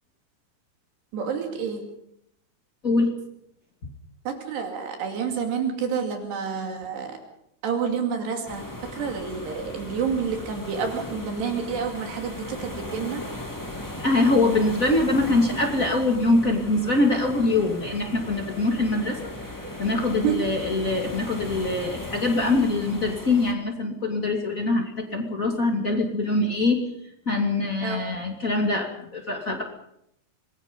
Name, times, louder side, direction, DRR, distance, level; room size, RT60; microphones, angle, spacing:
voice 1, 1.1-1.9 4.3-7.2 7.6-8.7 8.9-13.2 20.2-20.4 27.8-28.0, right 6 dB, 75° right, 4 dB, 4.5 m, -29 dB
sound 1, 8.4-23.5, left 1 dB, 10° left, 1.1 m, -37 dB
voice 2, 14.0-19.1 19.8-26.8 27.3-29.6, left 2 dB, 25° left, 1 dB, 2.2 m, -23 dB
26.0 x 21.0 x 5.4 m, 0.75 s
omnidirectional pair, 4.9 m